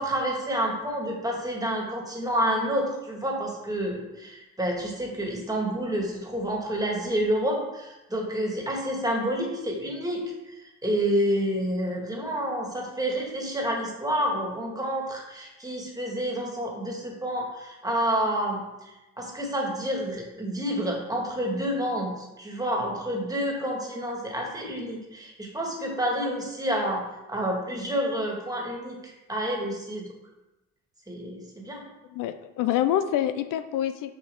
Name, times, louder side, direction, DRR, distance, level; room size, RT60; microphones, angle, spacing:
voice 1, 0.0-18.6 19.2-27.0 27.3-30.1 31.1-31.8, equal, 10° right, -1 dB, 1.9 m, -29 dB
voice 2, 32.1-34.1, left 11 dB, 70° left, 10 dB, 0.6 m, -26 dB
6.8 x 5.6 x 3.7 m, 1.0 s
cardioid pair, 95°, 33 cm